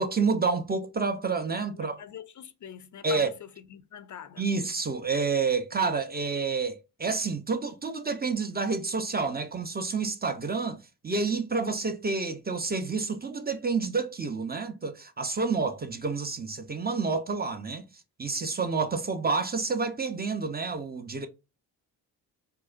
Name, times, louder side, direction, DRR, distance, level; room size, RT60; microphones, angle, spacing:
voice 1, 0.0-2.0 3.0-3.3 4.4-10.8 11.0-17.8 18.2-21.3, right 4 dB, 25° right, 0.6 m, -29 dB
voice 2, 1.8-4.4, left 9 dB, 45° left, 0.5 m, -44 dB
4.5 x 2.1 x 2.5 m
cardioid pair, 80°, 41 cm